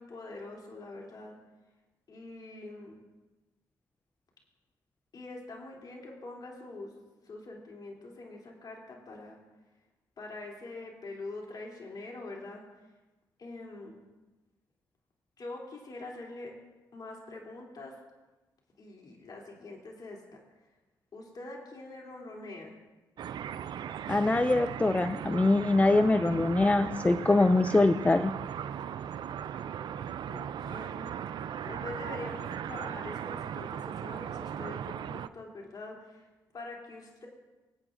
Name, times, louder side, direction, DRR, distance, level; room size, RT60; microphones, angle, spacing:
voice 1, 0.0-1.4 2.1-3.0 5.1-6.9 7.3-9.4 10.2-12.6 13.4-14.0 15.4-16.5 16.9-17.9 18.8-20.4 21.1-22.7 30.3-31.1 31.6-36.2 36.5-37.3, left 2 dB, 55° left, -1 dB, 2.9 m, -44 dB
sound 1, 23.2-35.3, right 9 dB, 65° right, 0.4 m, -38 dB
voice 2, 24.1-28.3, left 2 dB, 15° left, 11 dB, 0.4 m, -24 dB
23.0 x 8.7 x 2.5 m, 1.1 s
supercardioid pair, 65°, 8 cm